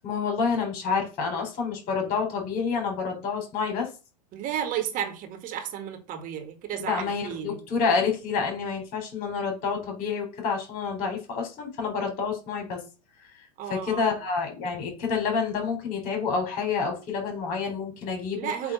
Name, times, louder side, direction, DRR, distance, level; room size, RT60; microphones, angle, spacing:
voice 1, 0.0-3.9 6.8-12.8 13.7-18.5, left 5 dB, 45° left, 3.9 m, -28 dB
voice 2, 4.3-7.6 13.6-14.2 18.3-18.7, right 9 dB, 40° right, 2.1 m, -33 dB
8.2 x 3.4 x 6.4 m
figure-of-eight pair, 90°, 21 cm